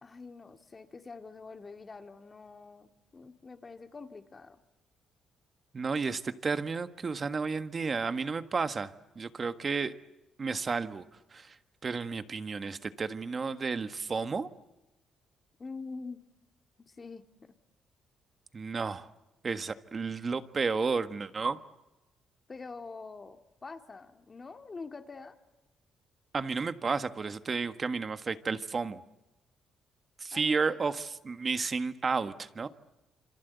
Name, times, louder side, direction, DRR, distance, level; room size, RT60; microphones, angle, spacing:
voice 1, 0.0-4.6 15.6-16.2 16.8-17.2 22.5-25.4 30.3-30.8, left 4 dB, 30° left, 6 dB, 2.3 m, -45 dB
voice 2, 5.7-9.9 10.4-11.0 11.3-14.5 18.5-19.1 19.4-21.6 26.3-29.0 30.2-32.7, right 4 dB, 35° right, 10 dB, 1.5 m, -32 dB
27.5 x 26.0 x 8.2 m, 0.99 s
cardioid pair, 90°, 0 cm